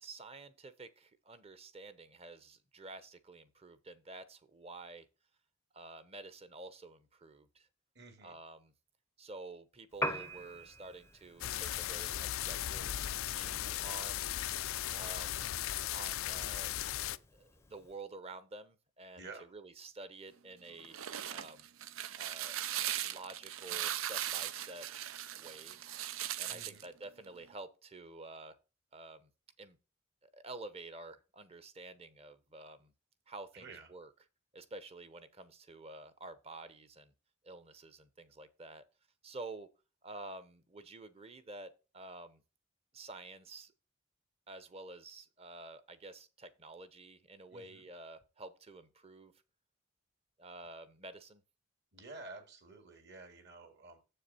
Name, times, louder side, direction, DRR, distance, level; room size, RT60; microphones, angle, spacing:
voice 1, 0.0-5.1 5.7-7.7 8.2-8.7 9.2-14.4 14.9-15.6 15.9-16.7 17.0-19.3 19.5-21.0 21.3-21.7 22.2-22.6 23.0-24.9 25.4-25.8 26.4-28.6 28.9-29.3 29.6-29.8 30.2-32.9 33.3-34.1 34.5-37.1 37.4-38.8 39.2-39.7 40.0-42.4 42.9-43.7 44.5-49.3 50.4-51.4, right 2 dB, 30° right, 0.9 m, -50 dB
voice 2, 7.9-8.4 19.1-19.5 26.5-26.9 33.5-33.9 47.5-47.9 51.9-54.0, right 3 dB, 55° right, 2.2 m, -51 dB
Piano, 9.9-18.0, left 1 dB, 15° left, 0.6 m, -46 dB
sound 1, 11.4-17.2, left 12 dB, 90° left, 0.4 m, -37 dB
sound 2, 20.7-26.8, right 11 dB, 90° right, 0.6 m, -39 dB
7.6 x 6.7 x 4.2 m
head